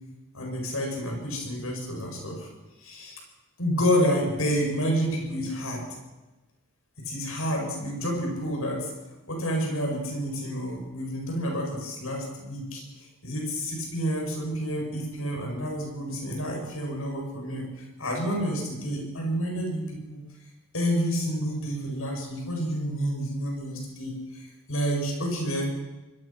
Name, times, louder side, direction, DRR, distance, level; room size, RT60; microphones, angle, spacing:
voice 1, 0.3-2.5 2.8-3.2 3.6-5.8 7.0-8.9 9.3-12.8 13.2-17.7 18.0-20.2 20.7-25.7, equal, 80° left, 0 dB, 7.8 m, -29 dB
25.5 x 21.0 x 6.2 m, 1.1 s
head